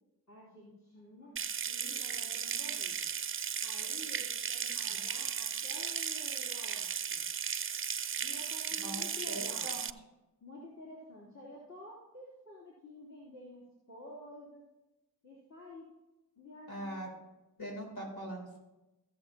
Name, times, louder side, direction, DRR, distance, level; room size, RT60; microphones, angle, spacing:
voice 1, 0.3-3.1 3.6-7.2 8.2-9.7 10.4-14.6 15.2-15.9 16.4-17.0, left 1 dB, 45° left, -6 dB, 3.5 m, -50 dB
Water tap faucet / Sink (filling or washing) / Trickle dribble, 1.4-9.9, right 7 dB, 35° right, 0.5 m, -36 dB
voice 2, 8.8-9.9 16.7-17.1 17.6-18.6, right 1 dB, 65° left, -1 dB, 3.7 m, -42 dB
16.5 x 7.1 x 2.9 m, 1.0 s
cardioid pair, 45°, 39 cm